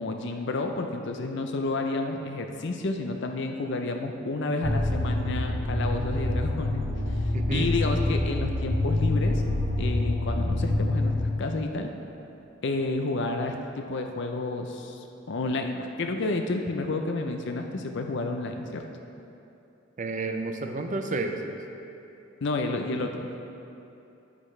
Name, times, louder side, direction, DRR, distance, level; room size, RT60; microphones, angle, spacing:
voice 1, 0.0-6.8 7.5-9.4 9.8-11.9 12.6-15.0 15.3-18.8 22.4-23.4, left 2 dB, 60° left, 4 dB, 0.5 m, -30 dB
sound 1, 4.6-11.2, left 1 dB, 80° left, 1.5 m, -26 dB
voice 2, 7.3-7.7 20.0-21.6, right 3 dB, 40° right, 5 dB, 0.6 m, -30 dB
10.0 x 8.5 x 3.2 m, 2.8 s
head